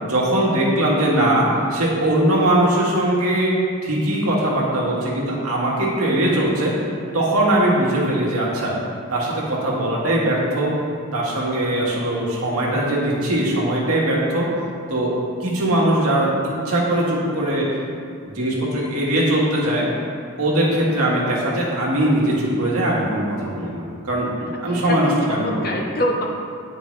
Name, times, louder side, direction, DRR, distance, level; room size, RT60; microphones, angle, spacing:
voice 1, 0.0-3.6 3.8-6.7 7.1-8.7 9.1-10.7 11.1-14.5 14.9-16.3 16.6-17.7 18.3-19.9 20.4-25.7, right 1 dB, 85° right, -4 dB, 1.6 m, -20 dB
voice 2, 24.6-26.2, left 1 dB, 45° left, 0 dB, 0.9 m, -25 dB
9.3 x 5.3 x 3.2 m, 2.2 s
head